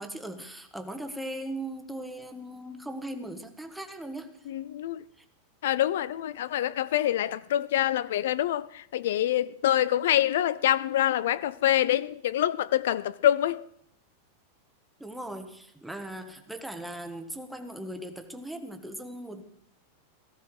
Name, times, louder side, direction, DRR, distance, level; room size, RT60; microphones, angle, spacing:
voice 1, 0.0-4.3 15.0-19.4, right 1 dB, ahead, 1.2 m, -38 dB
voice 2, 4.5-5.0 5.6-13.6, left 12 dB, 70° left, 0.5 m, -26 dB
18.0 x 15.0 x 4.9 m
supercardioid pair, 175°, 0 cm